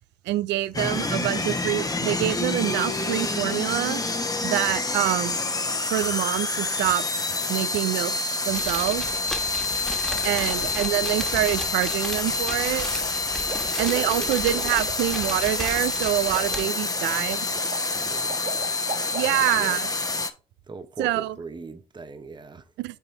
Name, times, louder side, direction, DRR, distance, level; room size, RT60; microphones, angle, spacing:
voice 1, 0.2-4.0 4.4-5.4 5.9-7.0 7.5-8.1 8.5-9.0 10.2-12.9 13.8-17.5 19.1-19.9 21.0-21.4 22.8-23.0, right 15 dB, 80° right, 0.4 m, -26 dB
sound 1, 0.7-20.3, left 3 dB, 20° left, 0.9 m, -27 dB
sound 2, 8.5-16.7, equal, ahead, 1.5 m, -36 dB
sound 3, 10.1-11.3 13.0-13.1 13.4-19.6, right 4 dB, 50° right, 1.9 m, -39 dB
voice 2, 10.5-10.8 13.8-14.7 17.9-18.7 19.3-19.8 20.7-22.7, right 4 dB, 25° right, 0.8 m, -40 dB
7.1 x 4.2 x 3.9 m
hypercardioid pair, 50°, 18 cm